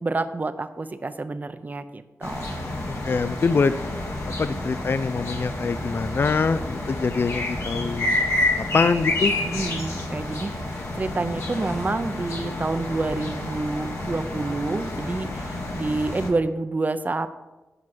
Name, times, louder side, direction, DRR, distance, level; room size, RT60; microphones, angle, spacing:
voice 1, 0.0-2.5 9.5-17.4, right 3 dB, 35° right, 10 dB, 0.7 m, -28 dB
sound 1, 2.2-16.3, left 2 dB, 70° left, 2.0 m, -29 dB
voice 2, 3.1-3.7 4.4-8.2 8.6-9.3, left 4 dB, 50° left, 13 dB, 0.4 m, -24 dB
10.5 x 5.2 x 6.0 m, 1.1 s
cardioid pair, 75°, 5 cm